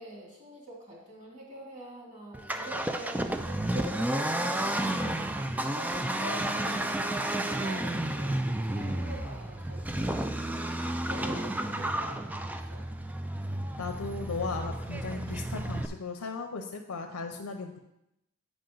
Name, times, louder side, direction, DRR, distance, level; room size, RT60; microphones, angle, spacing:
voice 1, 0.0-5.2 5.6-12.9, right 1 dB, 35° right, -4 dB, 2.7 m, -45 dB
Accelerating revving vroom, 2.3-15.9, right 1 dB, 5° right, 0.3 m, -32 dB
voice 2, 13.8-17.8, left 4 dB, 90° left, 3 dB, 0.6 m, -36 dB
8.8 x 5.0 x 3.9 m, 0.85 s
head